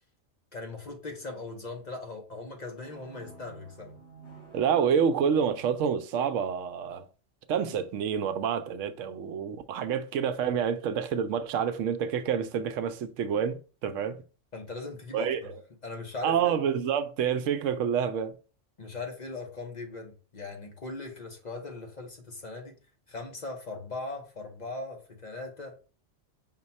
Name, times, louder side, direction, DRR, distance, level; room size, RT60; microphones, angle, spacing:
voice 1, 0.5-3.9 14.5-15.5 15.8-16.6 18.8-22.8 23.1-25.8, left 3 dB, 40° left, 0.8 m, -39 dB
sound 1, 2.8-6.0, right 4 dB, 60° left, 2.4 m, -51 dB
voice 2, 4.5-7.1 7.5-14.2 15.1-15.4 16.2-18.3, right 7 dB, 85° right, 0.9 m, -28 dB
5.7 x 2.3 x 4.1 m
omnidirectional pair, 1.3 m